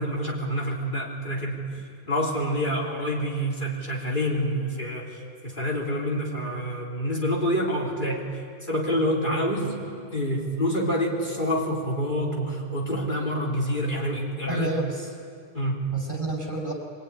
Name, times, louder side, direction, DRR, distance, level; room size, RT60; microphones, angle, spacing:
voice 1, 0.0-1.6 2.1-8.3 8.7-9.7 10.1-14.7 15.5-15.9, equal, 50° left, -3 dB, 3.9 m, -27 dB
voice 2, 14.5-15.1 15.9-16.7, right 1 dB, 50° right, 0 dB, 5.1 m, -30 dB
24.0 x 22.5 x 9.9 m, 2.4 s
omnidirectional pair, 1.1 m